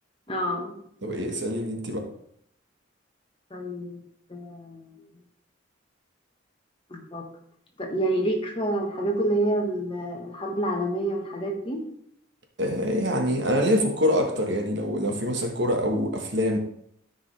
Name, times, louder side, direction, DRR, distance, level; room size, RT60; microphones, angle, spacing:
voice 1, 0.3-0.8 3.5-4.0 4.3-5.0 6.9-7.3 7.8-11.9, right 1 dB, 25° left, 1 dB, 1.2 m, -28 dB
voice 2, 1.0-2.1 12.6-16.6, equal, 55° right, 3 dB, 1.3 m, -25 dB
13.5 x 5.2 x 3.3 m, 0.68 s
head